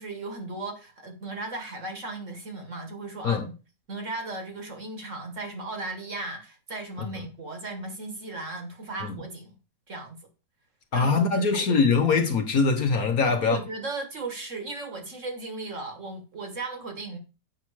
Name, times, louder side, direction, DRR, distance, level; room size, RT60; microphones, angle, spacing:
voice 1, 0.0-3.5 3.9-9.6 9.9-10.3 10.9-11.7 13.2-17.2, right 3 dB, 45° right, 1.4 m, -36 dB
voice 2, 10.9-13.6, left 4 dB, 55° left, 1.3 m, -22 dB
8.3 x 5.7 x 4.7 m
omnidirectional pair, 2.1 m